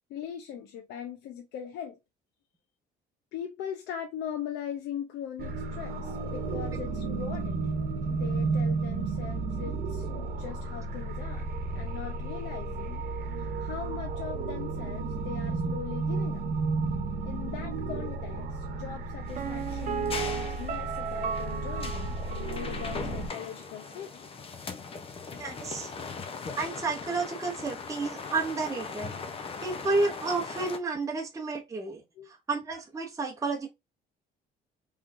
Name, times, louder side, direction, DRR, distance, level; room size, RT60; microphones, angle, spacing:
voice 1, 0.1-2.0 3.3-7.7 8.1-11.5 11.7-13.0 13.4-16.4 17.2-24.3 32.2-32.3, left 8 dB, 85° left, 0.7 m, -40 dB
sound 1, 5.4-23.3, right 3 dB, 65° right, 1.0 m, -33 dB
sound 2, 19.3-30.8, left 5 dB, 35° left, 0.8 m, -40 dB
Piano, 19.4-23.1 23.4-23.5, right 7 dB, 45° right, 0.6 m, -35 dB
voice 2, 25.4-25.9 26.6-33.7, right 3 dB, 20° right, 0.9 m, -31 dB
3.7 x 3.2 x 2.6 m
cardioid pair, 110°, 17 cm